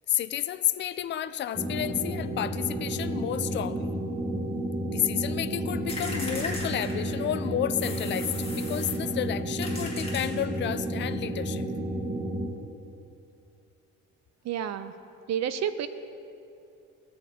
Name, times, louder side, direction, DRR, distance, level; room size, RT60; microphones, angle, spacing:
voice 1, 0.1-3.9 4.9-11.7, left 11 dB, 40° left, 14 dB, 0.4 m, -31 dB
sound 1, 1.5-12.5, right 1 dB, 25° right, 1.2 m, -31 dB
sound 2, 5.9-7.3 7.8-9.1 9.6-10.7, left 2 dB, 20° left, 1.9 m, -38 dB
voice 2, 14.4-14.9 15.3-15.9, right 9 dB, 60° right, 12 dB, 0.5 m, -29 dB
15.5 x 7.4 x 2.8 m, 2.5 s
cardioid pair, 90°, 30 cm